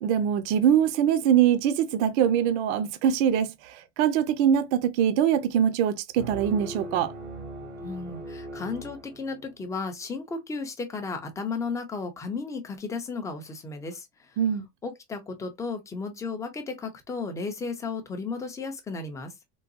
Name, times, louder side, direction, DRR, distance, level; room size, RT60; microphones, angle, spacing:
voice 1, 0.0-3.5 4.0-7.1 14.4-14.6, right 9 dB, 60° right, 0.6 m, -23 dB
sound 1, 6.2-9.8, right 1 dB, 80° right, 1.2 m, -39 dB
voice 2, 7.8-14.4 14.8-19.3, left 4 dB, 10° left, 0.4 m, -34 dB
3.8 x 2.2 x 2.5 m
supercardioid pair, 145°, 38 cm